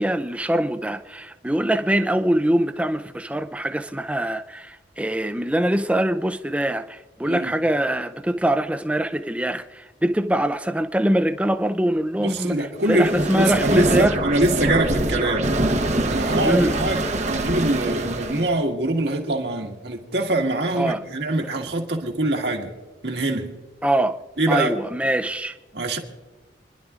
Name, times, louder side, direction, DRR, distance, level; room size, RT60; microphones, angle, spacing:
voice 1, 0.0-14.2 16.4-16.8 20.8-21.0 23.8-24.2 24.5-25.6, right 1 dB, 5° right, 0.5 m, -23 dB
voice 2, 12.2-15.5 16.1-22.7 23.0-23.5 24.4-24.7 25.7-26.0, right 2 dB, 60° right, 1.7 m, -24 dB
sound 1, 12.8-18.6, right 1 dB, 40° right, 0.9 m, -24 dB
29.0 x 11.0 x 2.5 m
head